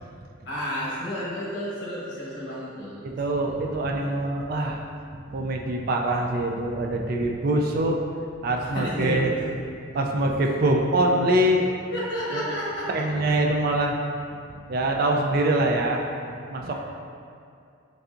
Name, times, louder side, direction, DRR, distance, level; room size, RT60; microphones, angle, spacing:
voice 1, 0.5-3.0 3.3-3.5 8.6-9.4 11.9-13.1, equal, 65° left, -7 dB, 1.1 m, -31 dB
voice 2, 3.0-4.8 5.3-8.0 8.4-9.3 9.9-11.7 12.3-12.4 12.9-14.0 14.7-16.0 16.5-16.8, right 1 dB, 50° right, 2 dB, 0.3 m, -24 dB
5.3 x 2.6 x 2.5 m, 2.4 s
head